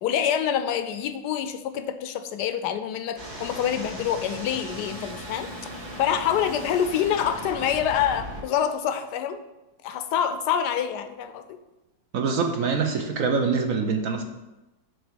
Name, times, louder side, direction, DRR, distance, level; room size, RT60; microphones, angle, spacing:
voice 1, 0.0-5.5 6.0-9.4 9.8-11.4, left 9 dB, 70° left, 9 dB, 1.1 m, -26 dB
sound 1, 3.2-8.4, equal, 85° right, 3.7 m, -38 dB
voice 2, 12.1-14.2, right 5 dB, 60° right, 4 dB, 0.9 m, -24 dB
8.0 x 3.4 x 6.2 m, 1.0 s
omnidirectional pair, 2.0 m